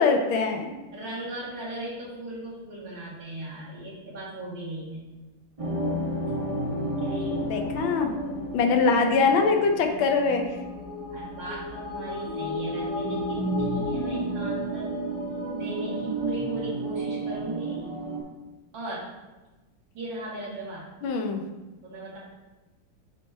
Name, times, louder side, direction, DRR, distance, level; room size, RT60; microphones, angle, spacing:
voice 1, 0.0-0.8 7.4-8.1 8.5-10.5 21.0-21.4, left 4 dB, 90° left, 4 dB, 1.6 m, -23 dB
voice 2, 0.9-5.0 7.0-7.6 11.1-14.9 15.5-17.9 18.7-19.1 19.9-20.9 21.8-22.2, right 1 dB, 65° right, -8 dB, 2.7 m, -37 dB
sound 1, 5.6-18.2, right 1 dB, 30° right, 0.6 m, -31 dB
7.6 x 4.2 x 3.4 m, 1.1 s
omnidirectional pair, 2.1 m